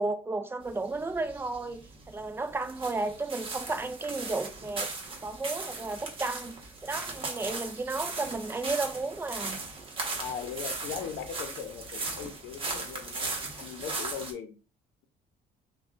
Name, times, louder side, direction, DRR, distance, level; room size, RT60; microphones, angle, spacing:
voice 1, 0.0-4.9 5.2-6.6 6.8-9.6, right 3 dB, 15° right, 0.4 m, -33 dB
sound 1, 0.6-14.3, right 3 dB, 30° right, 1.2 m, -38 dB
voice 2, 7.3-7.7 10.2-14.6, left 7 dB, 90° left, 0.7 m, -39 dB
5.3 x 2.3 x 2.4 m
cardioid pair, 110°, 17 cm